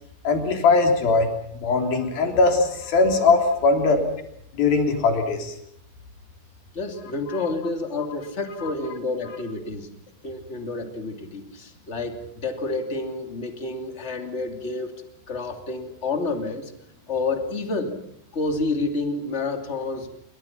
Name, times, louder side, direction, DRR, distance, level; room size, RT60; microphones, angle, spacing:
voice 1, 0.2-1.3 1.5-4.0 4.5-5.6 8.6-8.7, left 3 dB, 50° left, 4 dB, 4.9 m, -20 dB
voice 2, 6.7-9.9 10.2-14.9 15.3-16.7 17.1-18.0 18.3-20.2, left 3 dB, 25° left, 6 dB, 1.5 m, -29 dB
28.5 x 24.0 x 6.0 m, 0.71 s
omnidirectional pair, 5.8 m